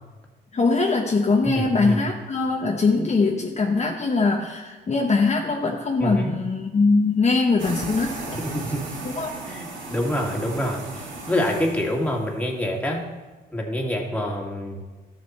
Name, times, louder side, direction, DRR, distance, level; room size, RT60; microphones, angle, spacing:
voice 1, 0.5-8.4 9.2-9.3, left 3 dB, 35° left, 0 dB, 1.1 m, -22 dB
voice 2, 1.4-2.0 6.0-6.3 8.3-8.8 9.5-13.0 13.5-14.8, equal, 5° left, -1 dB, 2.1 m, -26 dB
sound 1, 7.6-12.4, right 2 dB, 75° right, 2.4 m, -36 dB
13.5 x 6.6 x 4.3 m, 1.3 s
cardioid pair, 90°, 20 cm